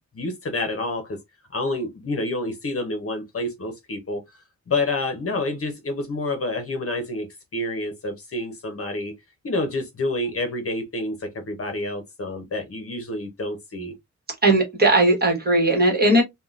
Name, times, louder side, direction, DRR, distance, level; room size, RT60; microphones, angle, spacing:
voice 1, 0.1-1.2 1.5-4.2 4.7-9.1 9.4-13.9, left 2 dB, 50° left, 0.7 m, -28 dB
voice 2, 14.4-16.2, right 2 dB, 30° right, 1.2 m, -18 dB
3.5 x 2.2 x 2.4 m
wide cardioid pair, 175°, 30 cm